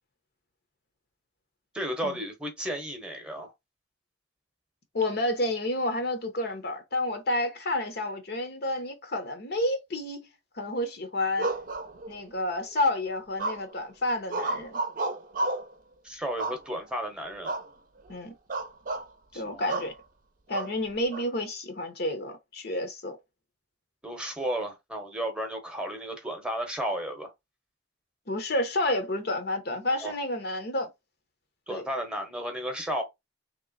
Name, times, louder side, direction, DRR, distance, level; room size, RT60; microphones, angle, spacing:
voice 1, 1.7-3.5 16.0-17.5 19.3-19.6 24.0-27.3 30.0-30.1 31.7-33.0, equal, 5° right, 0.9 m, -33 dB
voice 2, 4.9-10.3 10.5-11.5 12.1-14.8 18.1-18.3 19.3-19.9 20.5-23.2 28.3-30.9 31.7-31.8, left 1 dB, 55° left, 0.9 m, -30 dB
sound 1, 11.4-12.4 13.4-13.9 14.3-15.7 16.4-17.0 17.4-17.7 18.0-18.2 18.5-19.1 19.7-19.9 20.5-21.2, right 2 dB, 45° right, 0.6 m, -32 dB
3.2 x 3.0 x 4.0 m
head